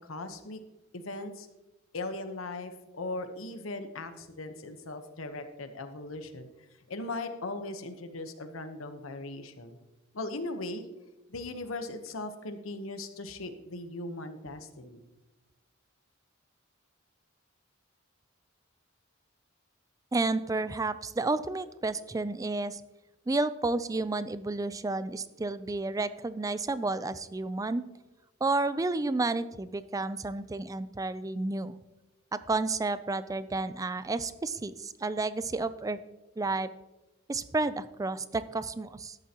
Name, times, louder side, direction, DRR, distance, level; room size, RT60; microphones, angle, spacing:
voice 1, 0.1-0.6 0.9-1.5 1.9-6.5 6.9-9.8 10.1-10.9 11.3-15.0, left 2 dB, 80° left, 8 dB, 1.0 m, -38 dB
voice 2, 20.1-22.8 23.3-27.8 28.4-31.8 32.3-36.0 36.4-36.7 37.3-39.2, right 3 dB, 15° right, 14 dB, 0.4 m, -31 dB
13.0 x 11.0 x 3.0 m, 1.0 s
head